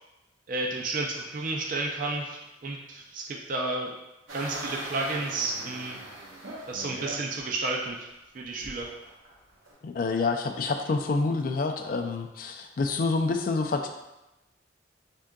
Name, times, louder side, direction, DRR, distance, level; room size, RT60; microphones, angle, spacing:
voice 1, 0.5-3.9 4.3-6.0 6.7-8.1 8.3-8.9, right 2 dB, 45° right, 0 dB, 0.4 m, -31 dB
sound 1, 4.3-7.4 7.9-8.0 8.6-9.7, right 1 dB, 85° right, 1.0 m, -40 dB
voice 2, 9.8-13.9, left 3 dB, 45° left, 5 dB, 0.3 m, -27 dB
3.6 x 3.6 x 2.2 m, 0.98 s
head